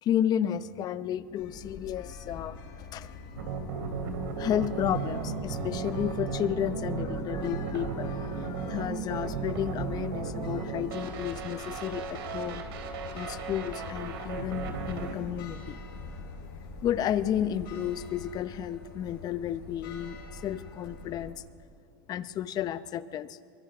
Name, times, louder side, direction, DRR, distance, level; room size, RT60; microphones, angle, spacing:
voice 1, 0.0-3.1 4.0-4.1 4.4-12.6 13.1-15.7 16.8-21.3 22.1-23.4, left 10 dB, 35° left, 15 dB, 0.7 m, -32 dB
sound 1, 1.3-21.3, left 4 dB, 65° left, 7.4 m, -44 dB
sound 2, 3.4-15.1, right 5 dB, 85° right, 2.9 m, -35 dB
24.0 x 22.0 x 6.0 m, 2.3 s
supercardioid pair, 135°, 12 cm